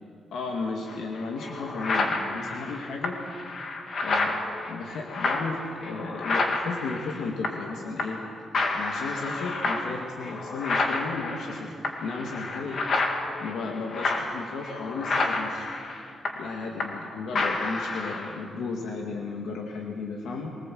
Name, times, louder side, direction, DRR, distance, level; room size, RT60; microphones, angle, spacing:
voice 1, 0.3-3.2 4.0-8.2 8.7-11.7 12.0-12.8 13.4-15.7 16.4-20.5, left 4 dB, 85° left, 1 dB, 2.2 m, -34 dB
sound 1, 0.9-1.0 1.4-7.7 8.0-8.3 8.5-17.1 17.3-18.4, left 3 dB, 45° left, 2.5 m, -30 dB
23.0 x 20.0 x 7.8 m, 2.4 s
wide cardioid pair, 140°, 0 cm